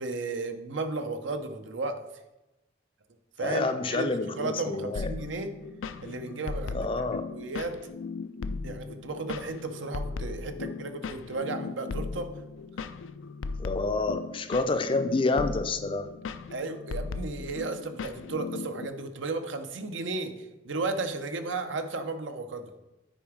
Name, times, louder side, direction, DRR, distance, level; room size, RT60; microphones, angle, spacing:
voice 1, 0.0-2.0 3.4-5.5 6.0-6.9 7.3-7.8 8.6-12.3 16.5-22.7, right 3 dB, 75° right, 8 dB, 0.8 m, -34 dB
voice 2, 3.4-5.1 6.7-7.3 13.6-16.1, left 3 dB, 25° left, 8 dB, 0.4 m, -28 dB
sound 1, 5.0-18.9, left 4 dB, 90° left, 0.4 m, -37 dB
9.0 x 4.7 x 5.0 m, 0.99 s
head